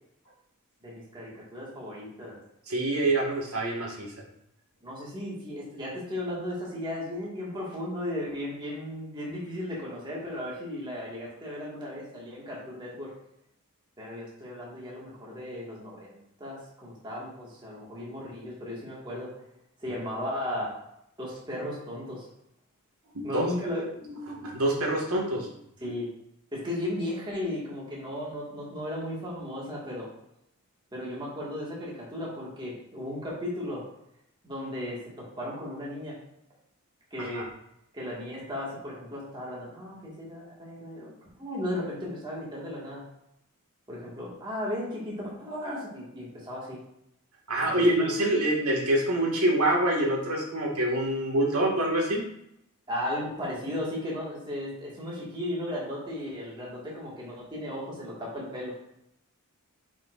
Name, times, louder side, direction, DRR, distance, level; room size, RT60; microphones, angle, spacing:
voice 1, 0.8-2.4 3.2-3.3 4.8-13.1 14.0-19.3 19.8-20.7 21.2-22.3 23.2-23.9 25.8-26.1 26.5-30.1 30.9-33.8 34.4-36.2 37.1-37.5 37.9-43.0 43.9-46.8 47.7-48.1 52.9-58.7, left 1 dB, 20° right, -6 dB, 1.8 m, -35 dB
voice 2, 2.7-4.1 23.1-23.4 24.1-25.5 37.2-37.5 47.5-52.2, right 1 dB, 85° right, -2 dB, 1.8 m, -26 dB
8.8 x 4.9 x 2.5 m, 0.79 s
head